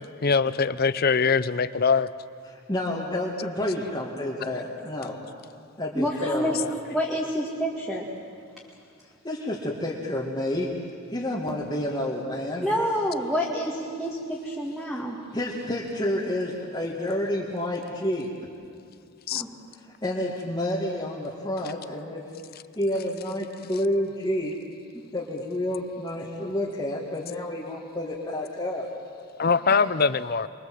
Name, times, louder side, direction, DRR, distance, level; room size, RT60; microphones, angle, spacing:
voice 1, 0.2-2.1 19.3-19.4 29.4-30.5, left 5 dB, 45° left, 15 dB, 0.6 m, -22 dB
voice 2, 2.5-5.2 5.8-6.7 9.2-10.7 11.1-12.7 15.3-18.3 20.0-22.2 22.8-24.6 25.1-28.9, left 1 dB, 20° left, -5 dB, 2.1 m, -29 dB
voice 3, 5.9-6.6 6.9-8.0 12.6-15.2 19.3-19.5 29.6-29.7, equal, ahead, -4 dB, 2.2 m, -28 dB
28.5 x 22.5 x 7.8 m, 2.5 s
head